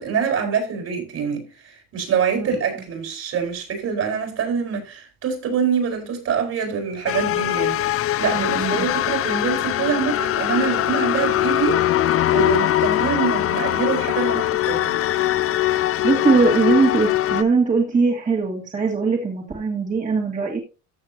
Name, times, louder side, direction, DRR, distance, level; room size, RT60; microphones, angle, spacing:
voice 1, 0.0-11.8 12.3-15.0, right 6 dB, 55° right, 4.7 m, -25 dB
sound 1, 7.1-17.4, left 13 dB, 50° left, 0.6 m, -21 dB
voice 2, 8.2-8.9 15.6-20.6, right 4 dB, 25° right, 2.1 m, -21 dB
14.5 x 6.8 x 2.8 m
cardioid pair, 125°, 30 cm